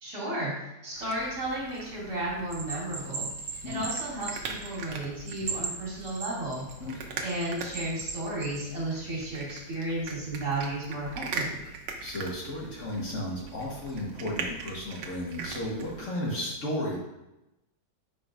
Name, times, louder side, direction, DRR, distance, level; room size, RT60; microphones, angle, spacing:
voice 1, 0.0-3.3 3.7-6.6 7.2-11.7, right 1 dB, 65° right, -6 dB, 3.0 m, -33 dB
sound 1, 0.9-16.0, right 4 dB, 85° right, 1.4 m, -41 dB
Bell, 2.5-4.9 5.3-6.8 7.3-8.7, right 5 dB, 50° right, 1.2 m, -36 dB
voice 2, 6.8-7.2 12.0-17.0, left 1 dB, 50° left, -4 dB, 1.6 m, -34 dB
10.0 x 4.6 x 2.5 m, 0.95 s
omnidirectional pair, 1.8 m